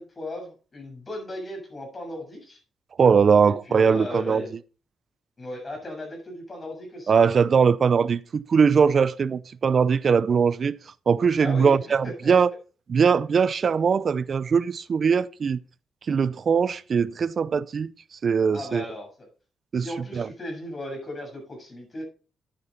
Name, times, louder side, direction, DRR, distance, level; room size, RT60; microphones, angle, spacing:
voice 1, 0.0-2.6 3.5-4.5 5.4-7.2 11.4-12.3 18.5-19.3 19.7-22.0, left 1 dB, 30° left, 7.1 m, -37 dB
voice 2, 3.0-4.4 7.1-10.8 11.1-12.5 12.9-15.6 16.1-17.9 18.2-18.8 19.7-19.9 20.1-20.3, right 6 dB, 50° right, 0.5 m, -21 dB
9.9 x 8.9 x 4.1 m
cardioid pair, 100°, 0 cm